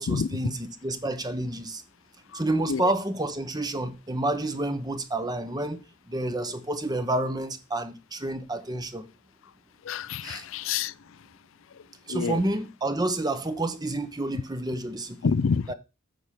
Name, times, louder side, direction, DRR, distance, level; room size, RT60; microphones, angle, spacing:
voice 1, 0.0-1.8 2.3-5.8 6.1-9.1 10.2-10.5 12.1-15.3 15.7-15.8, right 2 dB, 20° right, 1.0 m, -29 dB
voice 2, 9.8-10.9 12.1-12.4 15.2-15.7, left 5 dB, 70° left, 0.4 m, -27 dB
9.0 x 4.9 x 7.5 m
head